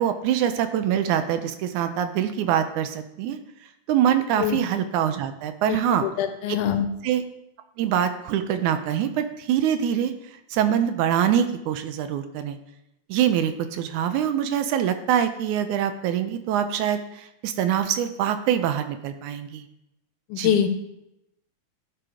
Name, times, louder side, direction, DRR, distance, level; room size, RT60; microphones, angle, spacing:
voice 1, 0.0-3.4 3.9-6.0 7.0-7.2 7.8-10.1 10.5-12.6 13.1-19.7 20.4-20.6, right 9 dB, 80° right, 9 dB, 2.0 m, -24 dB
voice 2, 5.7-6.9 20.3-20.7, left 9 dB, 80° left, 8 dB, 2.1 m, -24 dB
11.5 x 4.5 x 4.9 m, 0.84 s
omnidirectional pair, 3.6 m